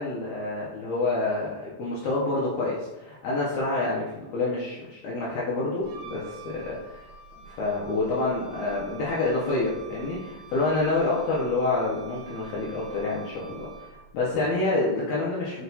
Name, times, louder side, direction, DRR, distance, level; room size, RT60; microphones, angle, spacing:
voice 1, 0.0-7.0 7.5-13.9 14.1-15.6, left 2 dB, 75° left, -6 dB, 1.8 m, -28 dB
Wind instrument woodwind instrument, 5.8-14.2, right 6 dB, 85° right, 1.5 m, -46 dB
6.0 x 2.2 x 2.6 m, 0.99 s
omnidirectional pair, 3.6 m